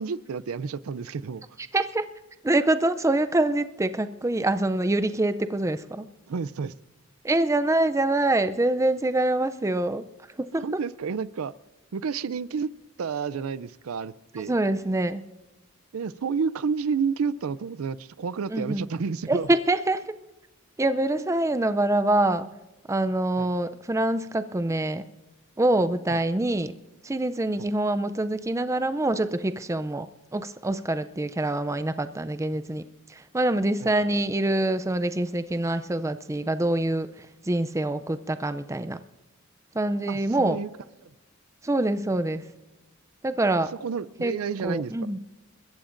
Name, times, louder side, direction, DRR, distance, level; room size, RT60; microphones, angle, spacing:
voice 1, 0.0-1.4 6.3-6.7 10.5-11.5 11.9-12.7 13.0-14.5 15.9-19.5 23.4-23.5 26.1-26.2 27.6-27.7 33.8-33.9 40.1-40.7 41.0-41.1 43.8-44.9, right 5 dB, 90° right, 18 dB, 0.5 m, -30 dB
voice 2, 1.7-2.1 2.4-6.1 7.2-10.0 10.4-10.8 14.5-15.3 18.5-18.9 19.3-20.2 20.8-22.5 22.9-25.0 25.6-26.7 27.0-39.0 39.7-40.6 41.6-42.4 43.2-43.7 44.2-44.3 44.6-45.2, right 2 dB, 15° right, 11 dB, 0.4 m, -25 dB
29.5 x 14.5 x 2.6 m, 1.1 s
head